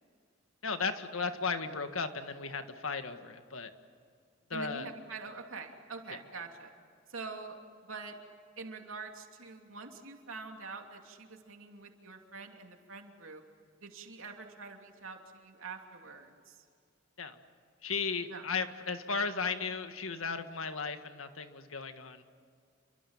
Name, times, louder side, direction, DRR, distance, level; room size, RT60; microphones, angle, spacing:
voice 1, 0.6-3.7 4.5-4.9 17.2-17.4 17.8-22.2, left 5 dB, 90° left, 8 dB, 1.8 m, -35 dB
voice 2, 4.5-6.7 7.1-8.2 8.6-13.4 13.8-16.6 18.3-18.4, right 4 dB, 85° right, 3 dB, 2.9 m, -45 dB
29.5 x 24.5 x 7.3 m, 2.2 s
head